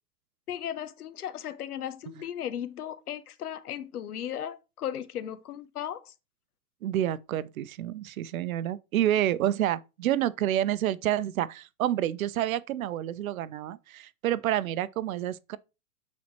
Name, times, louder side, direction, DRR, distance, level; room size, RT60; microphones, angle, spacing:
voice 1, 0.5-6.1, left 10 dB, 80° left, 0.8 m, -36 dB
voice 2, 6.8-15.6, right 12 dB, 65° right, 0.7 m, -28 dB
9.3 x 4.3 x 3.1 m
hypercardioid pair, 125°, 44 cm